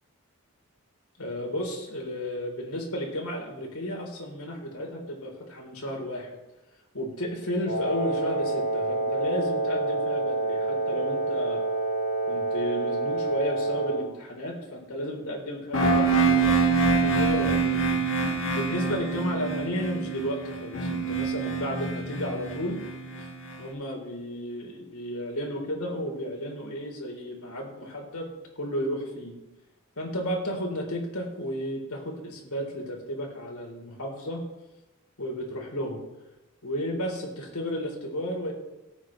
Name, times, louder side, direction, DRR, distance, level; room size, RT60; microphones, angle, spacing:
voice 1, 1.2-6.3 6.9-11.6 12.3-22.8 23.2-23.3 23.6-29.4 30.0-34.4 35.2-36.0 36.6-38.5, equal, 85° left, 0 dB, 3.7 m, -33 dB
Wind instrument woodwind instrument, 7.7-14.1, right 2 dB, 40° left, 4.5 m, -28 dB
sound 1, 15.7-23.5, right 4 dB, 65° left, 2.0 m, -25 dB
17.5 x 8.7 x 3.2 m, 0.97 s
head